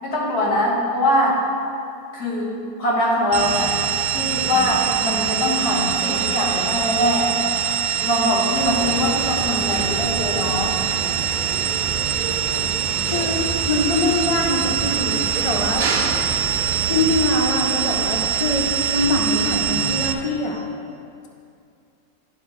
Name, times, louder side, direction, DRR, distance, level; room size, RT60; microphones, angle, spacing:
voice 1, 0.0-1.4 2.1-3.8 4.1-7.3 8.0-10.8, left 1 dB, 75° left, -4 dB, 2.0 m, -22 dB
sound 1, 3.3-20.1, right 9 dB, 85° right, 1.2 m, -24 dB
sound 2, 8.5-17.3, right 3 dB, 65° right, 0.4 m, -30 dB
voice 2, 13.1-15.9 16.9-20.6, left 2 dB, 30° left, 0 dB, 0.6 m, -23 dB
11.5 x 4.6 x 4.5 m, 2.5 s
omnidirectional pair, 1.6 m